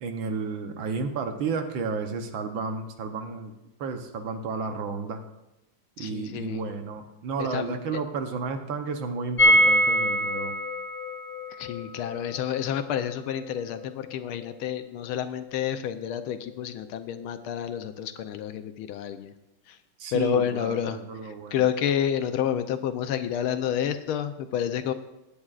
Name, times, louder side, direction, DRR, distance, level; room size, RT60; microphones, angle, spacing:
voice 1, 0.0-3.5 3.8-5.2 6.0-10.5 20.0-21.6, right 4 dB, 70° right, 6 dB, 1.5 m, -32 dB
voice 2, 6.0-6.6 7.4-7.8 11.5-19.3 19.7-19.8 20.1-24.9, left 9 dB, 80° left, 9 dB, 1.5 m, -29 dB
sound 1, 9.4-15.2 15.4-15.5 15.8-15.9, right 1 dB, 40° left, 0.4 m, -25 dB
21.0 x 8.8 x 2.4 m, 0.95 s
omnidirectional pair, 2.4 m